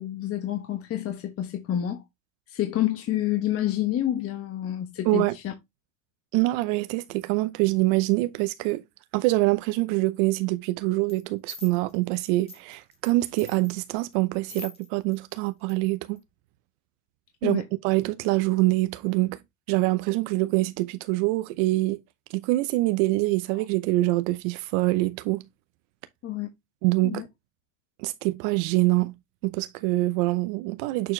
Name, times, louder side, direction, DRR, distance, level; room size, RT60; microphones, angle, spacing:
voice 1, 0.0-2.0 2.5-5.5 17.4-17.6 26.2-26.5 27.0-27.3, left 12 dB, 35° left, 1.2 m, -28 dB
voice 2, 6.3-8.8 9.1-16.2 17.4-19.4 19.7-22.0 22.3-25.4 26.8-27.2 28.0-29.1 29.4-31.1, right 20 dB, 65° right, 0.8 m, -25 dB
sound 1, 11.1-11.2 11.5-13.1 13.4-15.2 15.5-15.7 16.2-16.3, left 4 dB, 15° left, 2.0 m, -44 dB
6.8 x 4.3 x 3.2 m
supercardioid pair, 120°, 41 cm